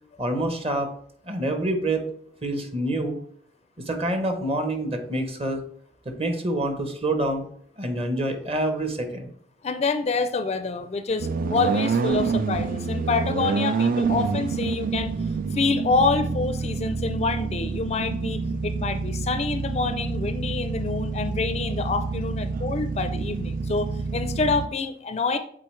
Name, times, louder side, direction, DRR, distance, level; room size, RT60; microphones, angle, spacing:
voice 1, 0.2-0.9 1.3-2.1 2.4-3.2 3.9-5.6 6.0-7.5 7.8-9.3, right 1 dB, 35° right, 6 dB, 0.9 m, -26 dB
voice 2, 9.6-15.2 15.5-25.4, left 4 dB, 35° left, 10 dB, 0.4 m, -27 dB
sound 1, 11.2-24.7, right 4 dB, 50° right, 0.4 m, -27 dB
7.5 x 4.2 x 3.2 m, 0.64 s
head